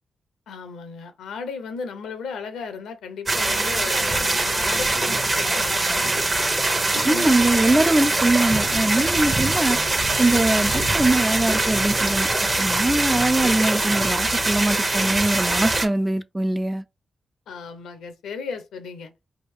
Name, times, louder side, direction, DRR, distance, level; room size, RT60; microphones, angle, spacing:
voice 1, 0.5-7.7 17.5-19.1, left 5 dB, 90° left, 0.6 m, -35 dB
sound 1, 3.3-15.9, right 2 dB, 40° right, 0.9 m, -22 dB
voice 2, 7.1-9.8 10.2-12.3 12.6-16.8, right 2 dB, 20° right, 0.3 m, -22 dB
3.5 x 2.4 x 3.5 m
supercardioid pair, 50°, 0 cm